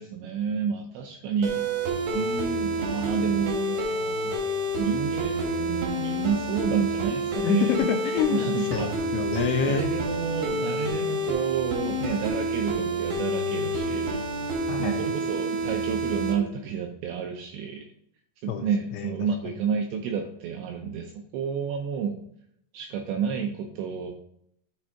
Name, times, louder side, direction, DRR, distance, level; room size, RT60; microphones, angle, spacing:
voice 1, 0.0-1.6 2.1-4.3 4.8-7.7 8.3-9.0 9.6-14.2 14.8-17.9 18.4-22.2 22.7-24.1, right 7 dB, 85° right, 2 dB, 2.5 m, -30 dB
sound 1, 1.4-16.3, right 1 dB, 70° right, 1.8 m, -28 dB
voice 2, 7.4-9.9 14.7-15.2 18.5-19.3, left 7 dB, 85° left, 5 dB, 2.8 m, -28 dB
9.1 x 3.5 x 4.4 m, 0.71 s
omnidirectional pair, 5.8 m